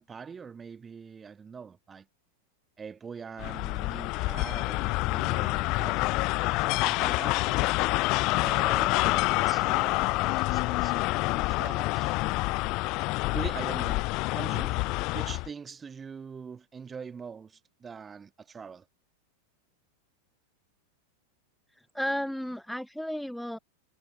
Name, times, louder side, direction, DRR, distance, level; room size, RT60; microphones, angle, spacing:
voice 1, 0.0-2.1 2.8-7.7 8.4-12.5 13.3-14.1 14.3-14.8 15.1-18.9, right 6 dB, 20° right, 1.7 m, -43 dB
sound 1, 3.4-15.5, left 23 dB, 40° left, 0.5 m, -27 dB
voice 2, 21.9-23.6, equal, ahead, 0.7 m, -33 dB
figure-of-eight pair, 90°, 0 cm